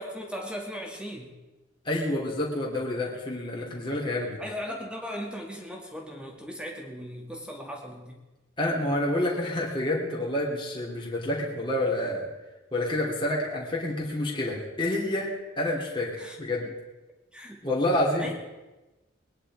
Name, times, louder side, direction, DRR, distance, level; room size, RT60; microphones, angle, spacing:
voice 1, 0.0-1.3 4.4-8.2 16.2-16.7 17.3-17.6 18.2-18.3, equal, 5° right, 0 dB, 2.0 m, -38 dB
voice 2, 1.8-4.4 8.6-12.3 12.7-15.3 15.6-16.7 17.6-18.3, left 1 dB, 25° left, -3 dB, 2.9 m, -28 dB
21.5 x 10.5 x 4.9 m, 1.1 s
head